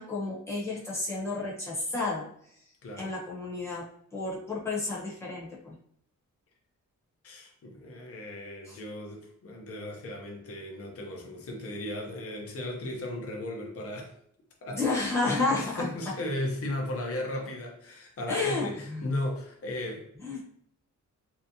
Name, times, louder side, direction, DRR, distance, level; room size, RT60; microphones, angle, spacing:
voice 1, 0.0-2.2 3.0-3.8 4.1-5.7 8.7-8.8 14.7-15.8 18.3-19.1 20.2-20.4, left 3 dB, 10° left, -7 dB, 0.9 m, -31 dB
voice 2, 2.8-3.1 7.2-14.1 14.6-20.0, left 1 dB, 50° left, 1 dB, 0.7 m, -36 dB
3.2 x 2.7 x 2.7 m, 0.67 s
wide cardioid pair, 175°, 31 cm